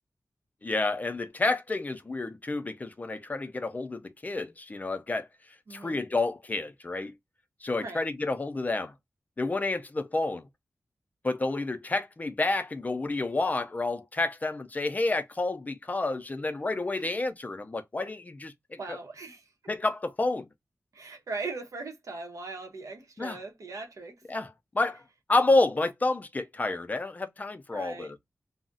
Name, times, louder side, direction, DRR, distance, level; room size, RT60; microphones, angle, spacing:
voice 1, 0.6-5.3 5.7-7.1 7.6-8.9 9.4-10.5 11.2-19.0 19.7-20.5 23.2-23.4 24.3-25.0 25.3-28.2, left 2 dB, 30° left, 0.4 m, -29 dB
voice 2, 5.7-6.0 7.8-8.0 17.0-17.1 18.8-19.5 20.9-24.2 27.7-28.2, right 3 dB, 90° right, 0.7 m, -39 dB
2.3 x 2.0 x 3.7 m
wide cardioid pair, 120°, 5 cm